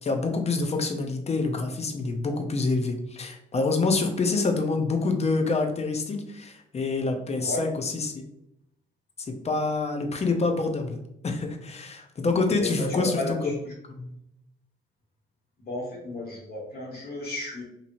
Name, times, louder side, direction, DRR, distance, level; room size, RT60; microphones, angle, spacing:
voice 1, 0.0-8.2 9.2-11.0 11.2-13.1 14.0-14.1, left 3 dB, 35° left, 4 dB, 0.6 m, -27 dB
voice 2, 12.5-13.5 15.6-17.6, left 2 dB, 50° left, -3 dB, 1.5 m, -33 dB
2.9 x 2.6 x 2.6 m, 0.79 s
supercardioid pair, 75°, 19 cm